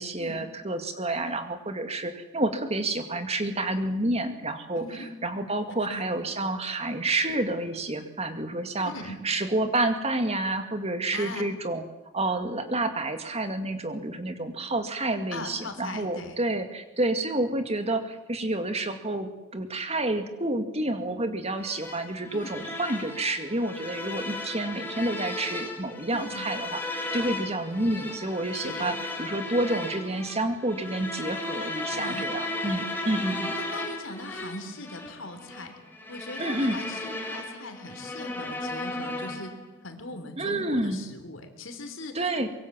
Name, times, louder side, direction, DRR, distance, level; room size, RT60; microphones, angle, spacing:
voice 1, 0.0-4.8 5.2-8.9 9.2-11.8 12.1-33.6 36.4-36.8 40.4-41.1 42.1-42.5, right 2 dB, 30° right, 8 dB, 2.2 m, -29 dB
voice 2, 4.7-5.1 5.8-6.0 8.8-9.2 11.1-11.4 15.3-16.4 22.3-22.6 26.1-26.5 28.5-28.9 31.9-32.3 33.6-35.7 36.1-39.5 39.8-42.2, left 2 dB, 80° left, 7 dB, 3.5 m, -40 dB
sound 1, 21.6-39.7, left 2 dB, 10° left, 3.7 m, -35 dB
24.0 x 23.0 x 7.5 m, 1.0 s
head